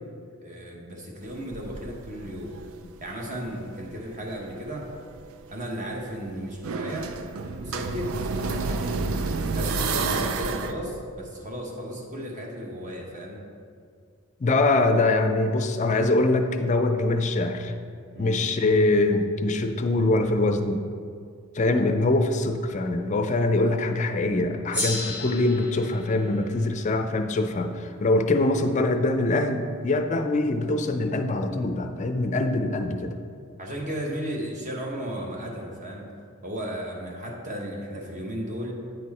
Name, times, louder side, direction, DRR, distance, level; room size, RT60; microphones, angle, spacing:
voice 1, 0.4-2.6 3.0-4.9 5.5-7.1 7.6-9.0 9.5-13.4 18.1-18.5 33.6-36.1 36.4-38.7, equal, 35° right, -1 dB, 1.1 m, -35 dB
sound 1, 1.2-3.4 3.8-10.7, right 4 dB, 75° right, 0.4 m, -30 dB
voice 2, 14.4-17.7 18.2-20.8 21.5-33.1, left 2 dB, 35° left, 6 dB, 0.4 m, -23 dB
Gong, 24.7-29.5, left 1 dB, 5° right, 1.3 m, -36 dB
9.3 x 4.6 x 4.1 m, 2.3 s
head